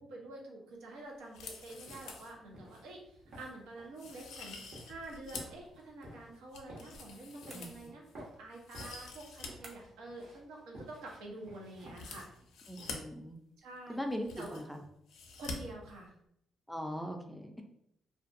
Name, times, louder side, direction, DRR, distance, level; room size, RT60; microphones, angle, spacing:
voice 1, 0.0-3.0 3.4-4.6 4.8-12.2 13.6-14.0 14.4-14.6 15.4-16.1, right 2 dB, 90° right, -1 dB, 0.7 m, -47 dB
sound 1, 1.2-2.3 2.7-2.8 3.3-3.5 4.0-5.6 6.0-8.1 8.5-9.5 9.8-9.9 11.9-13.0 13.8-13.9 14.0-14.8 15.1-15.5 15.8-15.9, left 4 dB, 85° left, 0.4 m, -47 dB
sound 2, 1.8-13.0, right 1 dB, 70° right, 1.2 m, -54 dB
sound 3, 7.5-8.2 9.6-10.1, right 2 dB, 40° right, 0.6 m, -55 dB
voice 2, 12.7-13.4 13.9-14.8 16.7-17.6, equal, ahead, 4 dB, 0.3 m, -40 dB
2.5 x 2.2 x 2.5 m, 0.75 s
cardioid pair, 90°, 0 cm